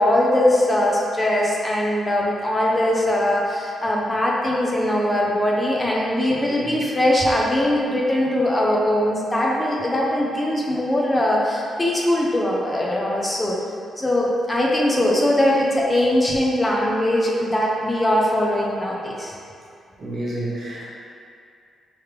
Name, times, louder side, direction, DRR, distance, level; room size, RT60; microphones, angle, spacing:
voice 1, 0.0-13.6 14.0-19.3, left 1 dB, 20° left, -3 dB, 0.7 m, -21 dB
voice 2, 6.3-6.7 20.0-20.9, right 1 dB, 55° right, -7 dB, 1.1 m, -30 dB
3.6 x 3.2 x 3.1 m, 2.4 s
supercardioid pair, 50°, 0 cm